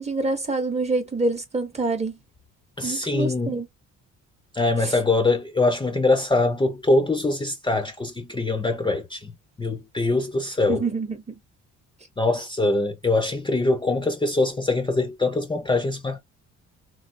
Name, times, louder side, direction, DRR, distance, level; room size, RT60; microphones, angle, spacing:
voice 1, 0.0-2.1 2.8-3.7 4.8-4.9 10.7-11.4, right 3 dB, 20° right, 0.8 m, -26 dB
voice 2, 2.8-3.6 4.5-9.3 9.6-10.9 12.2-16.2, left 2 dB, 15° left, 0.5 m, -23 dB
3.1 x 2.3 x 2.5 m
cardioid pair, 90°, 30 cm